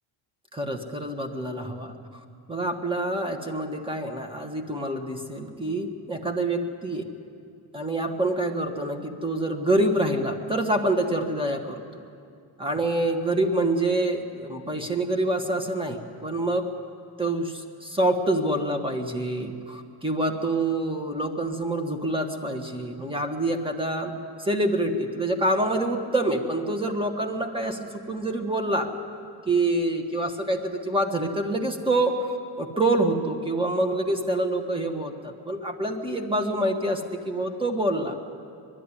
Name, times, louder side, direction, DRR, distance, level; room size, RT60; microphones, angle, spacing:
voice 1, 0.5-7.1 7.7-11.8 12.6-16.7 17.2-24.1 24.4-28.9 29.4-38.2, right 1 dB, 10° right, 5 dB, 1.5 m, -26 dB
21.5 x 13.0 x 10.0 m, 2.4 s
cardioid pair, 145°, 47 cm